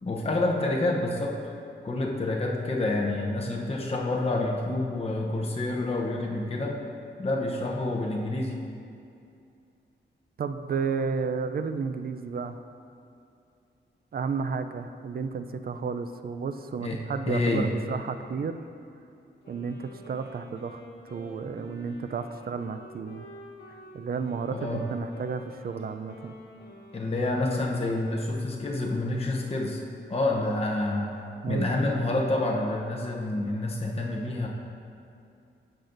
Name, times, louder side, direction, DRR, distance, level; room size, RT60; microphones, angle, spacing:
voice 1, 0.0-1.4 1.8-6.8 7.2-8.6 16.8-17.7 24.5-24.8 26.9-29.8 30.1-31.1 31.5-34.5, left 2 dB, 30° left, -1 dB, 0.8 m, -28 dB
voice 2, 10.4-12.6 14.1-18.6 19.5-20.8 21.1-23.3 23.9-26.3 31.4-31.7, right 5 dB, 50° right, 9 dB, 0.4 m, -32 dB
Wind instrument woodwind instrument, 19.4-27.6, equal, 55° left, 1.7 m, -49 dB
10.0 x 6.8 x 2.6 m, 2.6 s
wide cardioid pair, 80°, 19 cm